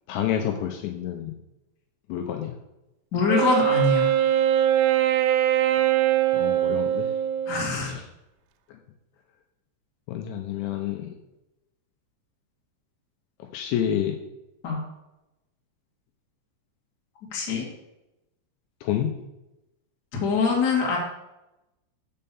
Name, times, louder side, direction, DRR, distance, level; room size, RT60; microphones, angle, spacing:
voice 1, 0.1-1.3 2.1-2.5 6.3-7.1 7.8-8.0 8.7-8.8 10.1-11.1 13.4-14.2 18.8-19.1, left 10 dB, 85° left, 4 dB, 2.7 m, -29 dB
voice 2, 3.1-4.1 7.4-7.9 14.6-14.8 17.3-17.7 20.2-21.0, left 4 dB, 55° left, -3 dB, 1.1 m, -23 dB
Wind instrument woodwind instrument, 3.3-7.8, right 12 dB, 85° right, 3.1 m, -22 dB
6.6 x 5.6 x 6.9 m, 0.94 s
omnidirectional pair, 5.6 m